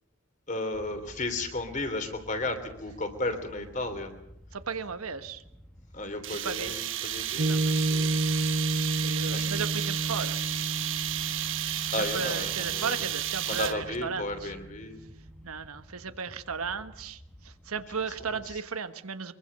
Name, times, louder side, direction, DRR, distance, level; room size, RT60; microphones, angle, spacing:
voice 1, 0.5-4.1 5.9-8.1 9.3-9.5 11.9-13.1 13.4-15.0 18.3-18.6, left 2 dB, 35° left, 7 dB, 3.1 m, -34 dB
sound 1, 0.7-18.6, equal, 5° left, 1.6 m, -52 dB
voice 2, 4.5-5.4 6.4-6.7 7.3-7.8 9.0-10.4 12.0-14.5 15.4-17.2 17.7-19.3, right 5 dB, 90° right, 10 dB, 1.4 m, -35 dB
sound 2, 6.2-14.0, right 12 dB, 60° right, 1.3 m, -32 dB
Piano, 7.4-14.1, right 1 dB, 45° right, 1.3 m, -31 dB
23.5 x 23.0 x 6.7 m, 0.78 s
head